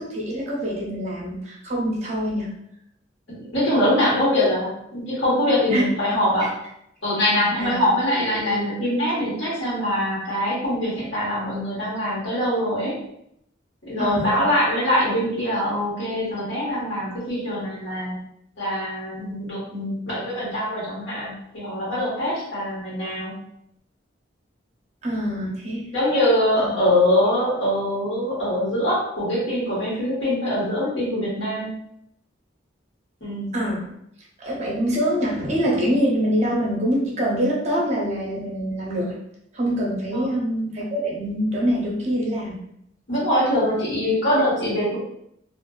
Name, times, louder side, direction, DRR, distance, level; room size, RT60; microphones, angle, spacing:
voice 1, 0.0-2.5 5.7-5.8 7.6-7.7 14.0-14.5 25.0-25.9 26.6-26.7 33.5-33.8 34.4-39.2 39.5-42.6, equal, 35° right, -4 dB, 0.6 m, -24 dB
voice 2, 3.3-6.5 7.0-13.0 13.8-18.2 18.6-23.3 25.9-31.7 33.2-33.5 40.1-40.3 43.1-45.0, left 1 dB, 70° left, -7 dB, 1.2 m, -23 dB
2.5 x 2.4 x 2.3 m, 0.75 s
head